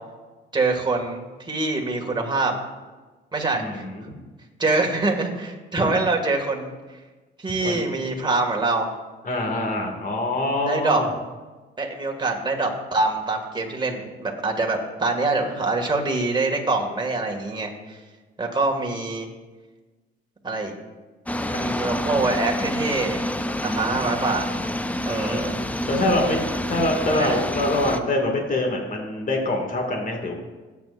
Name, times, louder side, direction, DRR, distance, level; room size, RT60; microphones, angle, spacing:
voice 1, 0.5-2.5 3.3-3.8 4.6-7.0 7.4-8.9 10.7-11.0 11.8-18.0 18.4-19.3 20.4-20.7 21.5-23.2 23.6-24.5 25.0-25.6 27.1-27.3, right 3 dB, 25° right, 1 dB, 2.1 m, -25 dB
voice 2, 3.5-4.2 5.8-5.9 7.6-7.8 9.2-11.1 23.6-23.9 25.1-25.5 25.9-26.4 26.7-30.3, left 1 dB, 45° left, 1 dB, 2.2 m, -25 dB
sound 1, 21.3-28.0, left 1 dB, 5° left, 0.6 m, -28 dB
18.0 x 8.3 x 2.6 m, 1.3 s
cardioid pair, 90°, 20 cm